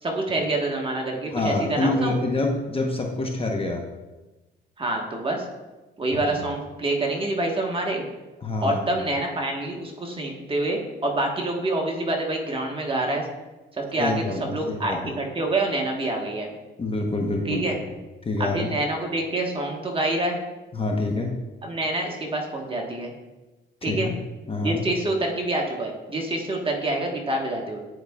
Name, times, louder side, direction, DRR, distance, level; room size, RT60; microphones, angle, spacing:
voice 1, 0.0-2.2 4.8-5.5 6.0-8.0 8.6-13.3 13.7-16.5 17.4-17.8 18.4-20.4 21.6-23.1 23.8-24.1 24.6-27.8, right 2 dB, 25° right, 1 dB, 1.2 m, -27 dB
voice 2, 1.3-3.8 6.1-6.3 8.4-8.9 14.0-15.0 16.8-17.9 18.2-18.7 20.7-21.4 23.8-24.1 24.5-24.8, left 2 dB, 30° left, 2 dB, 0.8 m, -26 dB
9.8 x 4.7 x 2.3 m, 1.1 s
cardioid pair, 90°, 20 cm